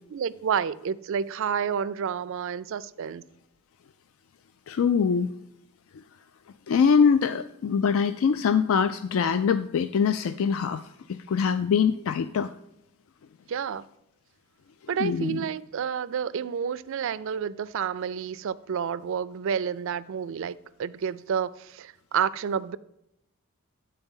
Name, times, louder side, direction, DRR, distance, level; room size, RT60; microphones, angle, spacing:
voice 1, 0.1-3.2 13.5-13.8 14.9-22.8, right 7 dB, 60° right, 0.3 m, -30 dB
voice 2, 4.7-5.3 5.9-6.0 6.7-12.5 15.0-15.4, left 6 dB, 65° left, 0.3 m, -23 dB
9.1 x 4.4 x 5.4 m
head